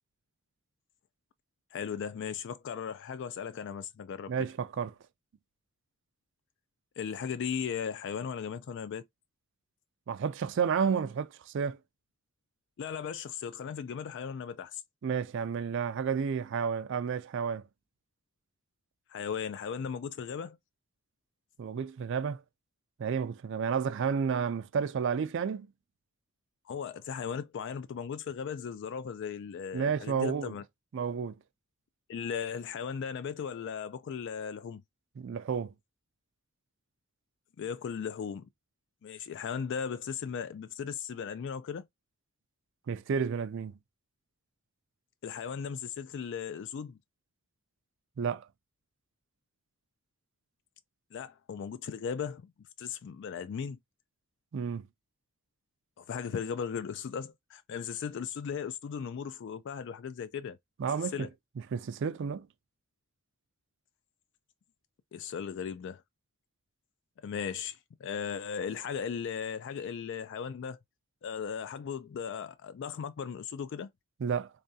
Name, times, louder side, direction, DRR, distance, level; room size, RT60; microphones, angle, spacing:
voice 1, 1.7-4.3 7.0-9.0 12.8-14.8 19.1-20.6 26.7-30.6 32.1-34.8 37.6-38.5 39.0-41.8 45.2-47.0 51.1-52.5 52.8-53.8 56.0-60.6 60.9-61.3 65.1-66.0 67.2-70.8 71.2-73.9, left 7 dB, 55° left, 0.3 m, -37 dB
voice 2, 4.3-4.9 10.1-11.8 15.0-17.6 21.6-22.4 23.0-25.7 29.7-30.5 30.9-31.3 35.2-35.7 42.9-43.7 48.2-48.5 54.5-54.8 60.8-61.3 61.7-62.5 74.2-74.5, right 6 dB, 60° right, 0.4 m, -31 dB
3.7 x 3.3 x 2.7 m
head